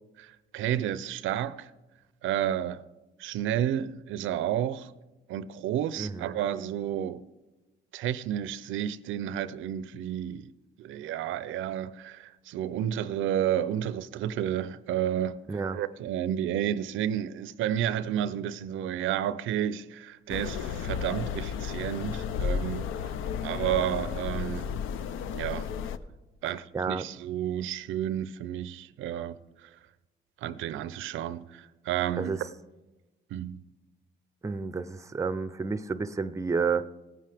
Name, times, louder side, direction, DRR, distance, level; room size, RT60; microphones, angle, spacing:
voice 1, 0.2-1.7 2.2-2.8 3.2-4.9 5.3-7.3 7.9-10.5 10.8-15.4 15.7-23.1 23.4-24.7 25.3-25.7 26.4-29.7 30.4-32.4 33.3-33.6, right 10 dB, 85° right, 0.5 m, -31 dB
voice 2, 6.0-6.4 15.5-15.8 26.7-27.0 32.2-32.4 34.4-36.8, right 5 dB, 15° right, 0.5 m, -30 dB
sound 1, 20.3-26.0, left 7 dB, 90° left, 0.5 m, -33 dB
18.0 x 9.2 x 3.4 m
cardioid pair, 90°, 20 cm